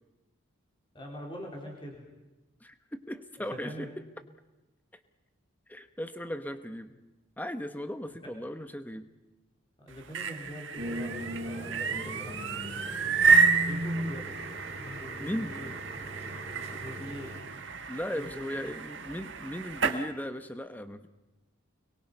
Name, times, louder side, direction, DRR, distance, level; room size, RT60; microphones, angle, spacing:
voice 1, 0.9-2.0 3.4-3.9 9.8-14.3 14.8-15.7 16.5-17.4 18.1-18.7, equal, 25° left, -1 dB, 4.0 m, -44 dB
voice 2, 2.6-4.0 5.7-7.0 7.4-9.1 15.2-15.5 17.0-17.1 17.9-21.1, equal, 10° left, 9 dB, 1.0 m, -37 dB
sound 1, 9.9-20.0, right 5 dB, 60° right, 1.5 m, -30 dB
sound 2, 10.8-17.4, equal, 30° right, 4.2 m, -38 dB
30.0 x 22.5 x 5.5 m, 1.0 s
head